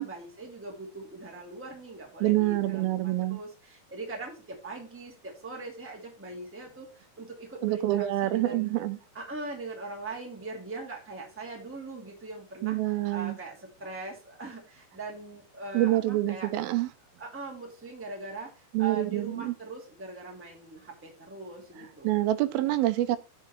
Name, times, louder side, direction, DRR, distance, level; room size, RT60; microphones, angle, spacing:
voice 1, 0.0-8.7 9.1-16.5 17.2-22.3, right 3 dB, 5° right, 1.7 m, -41 dB
voice 2, 2.2-3.4 7.6-9.0 12.6-13.4 15.7-16.9 18.7-19.5 22.0-23.2, right 16 dB, 85° right, 2.5 m, -26 dB
7.5 x 6.3 x 4.3 m
omnidirectional pair, 4.3 m